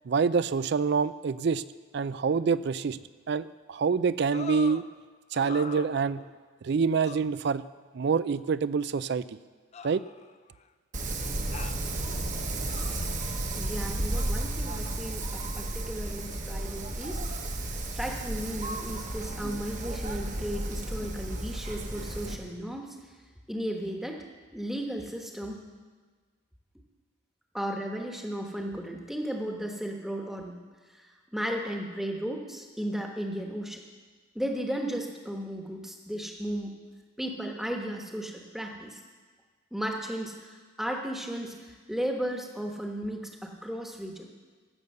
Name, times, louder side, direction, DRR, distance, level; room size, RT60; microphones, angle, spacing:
voice 1, 0.1-1.6 1.9-3.0 3.3-4.8 5.3-6.2 6.6-7.6 7.9-9.4 9.8-10.0, right 5 dB, 55° right, 16 dB, 0.3 m, -26 dB
sound 1, 4.3-4.9 5.3-6.4 7.0-7.3 8.3-8.4 9.7-10.6 11.5-11.8 12.7-13.2 14.1-14.3, left 5 dB, 30° left, 0.4 m, -42 dB
Wind, 10.9-22.4, right 1 dB, 35° right, 1.1 m, -33 dB
voice 2, 13.5-17.2 17.6-23.0 23.5-24.3 24.5-25.6 27.5-30.6 30.9-33.8 34.3-36.7 37.2-39.0 39.7-44.3, equal, ahead, 1 dB, 1.2 m, -35 dB
16.0 x 6.7 x 6.6 m, 1.4 s
head